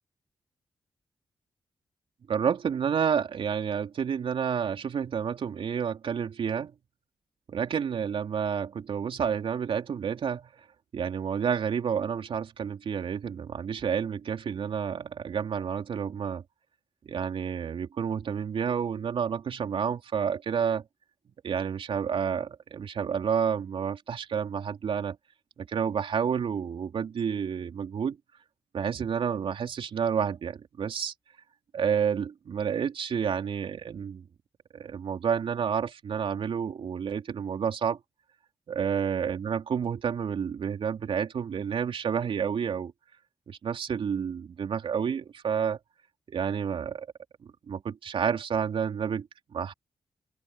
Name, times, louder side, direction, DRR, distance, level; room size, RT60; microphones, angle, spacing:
voice 1, 2.3-6.7 7.5-10.5 10.9-16.4 17.0-20.8 21.4-25.2 25.6-28.2 28.7-31.1 31.7-34.2 34.7-38.0 38.7-42.9 43.5-45.8 46.3-47.1 47.7-49.3 49.5-49.7, right 7 dB, 75° right, 3.4 m, -30 dB
open air
supercardioid pair, 40°, 9 cm